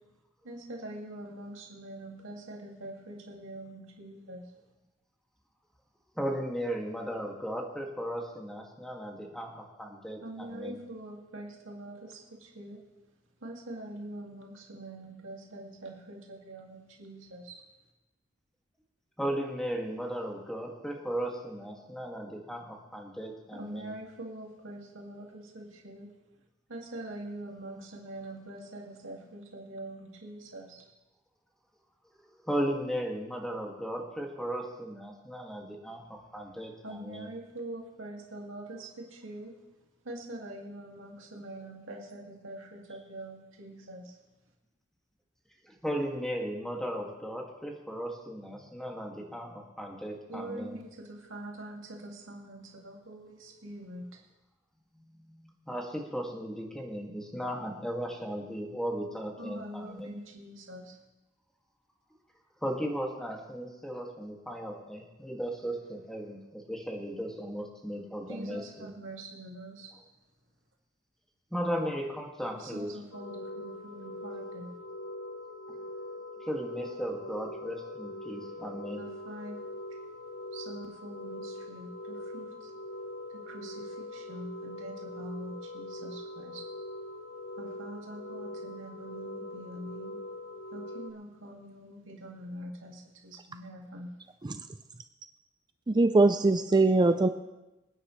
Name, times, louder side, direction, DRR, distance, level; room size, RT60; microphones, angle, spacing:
voice 1, 0.4-4.4 10.2-12.8 13.4-17.6 23.5-26.1 26.7-30.8 36.8-39.5 40.1-44.1 50.3-54.1 59.4-61.0 68.3-69.9 72.5-74.7 79.0-79.6 80.5-82.7 83.5-86.6 87.6-90.2 90.7-94.1, right 1 dB, 80° right, 0 dB, 2.3 m, -44 dB
voice 2, 6.2-10.8 19.2-23.9 32.4-36.0 36.3-37.3 45.6-50.8 55.1-60.2 62.6-68.9 69.9-70.0 71.5-73.0 75.7-75.8 76.4-79.0, equal, 5° left, 0 dB, 2.1 m, -36 dB
sound 1, 73.1-91.1, left 1 dB, 90° left, 1.0 m, -42 dB
voice 3, 95.9-97.3, right 2 dB, 20° right, 9 dB, 0.4 m, -22 dB
26.0 x 9.7 x 3.2 m, 1.0 s
head